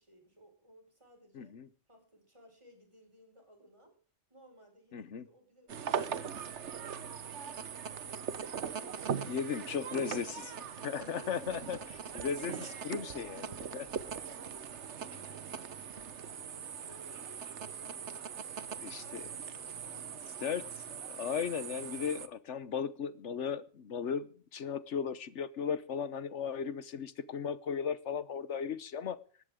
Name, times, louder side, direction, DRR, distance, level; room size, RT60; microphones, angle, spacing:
voice 1, 0.0-1.6 1.9-4.0 4.3-6.0 6.2-7.5 7.9-10.6 11.0-11.4 11.7-12.9 13.9-19.4 19.8-20.8, right 1 dB, 25° right, 4 dB, 5.2 m, -60 dB
voice 2, 1.3-1.7 4.9-5.3 9.2-10.4 10.8-11.8 12.1-13.9 18.8-19.2 20.4-29.2, left 7 dB, 75° left, 15 dB, 1.3 m, -36 dB
sound 1, 5.7-22.3, right 7 dB, 75° right, 1.3 m, -41 dB
20.0 x 14.5 x 3.7 m, 0.41 s
omnidirectional pair, 1.2 m